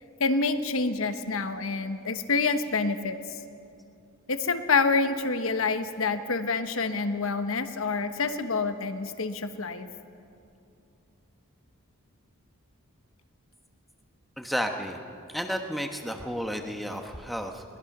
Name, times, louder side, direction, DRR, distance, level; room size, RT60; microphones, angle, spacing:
voice 1, 0.2-3.2 4.3-9.9, left 4 dB, 70° left, 9 dB, 1.1 m, -27 dB
voice 2, 14.4-15.0 15.3-17.6, equal, ahead, 4 dB, 1.2 m, -32 dB
22.0 x 20.5 x 6.0 m, 2.6 s
head